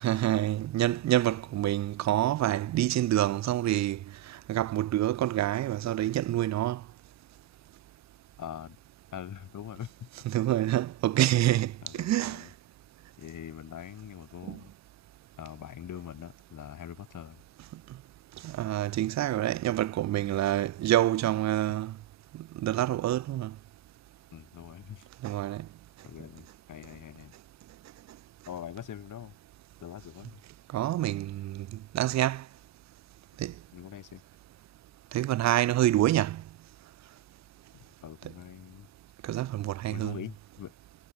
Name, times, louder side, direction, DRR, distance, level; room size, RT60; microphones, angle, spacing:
voice 1, 0.0-4.0 4.3-6.8 10.3-12.4 14.5-14.6 18.4-21.9 22.3-23.5 25.2-25.7 30.7-32.4 33.4-33.5 35.1-36.4 39.2-40.2, right 14 dB, 40° right, 0.6 m, -27 dB
voice 2, 8.4-8.8 9.1-10.1 11.8-12.5 13.2-14.7 15.4-17.4 24.3-25.1 26.0-27.3 28.5-29.4 29.8-30.4 33.7-34.2 37.7-38.9 39.9-40.7, left 10 dB, 45° left, 3.2 m, -43 dB
hypercardioid pair, 70°, 43 cm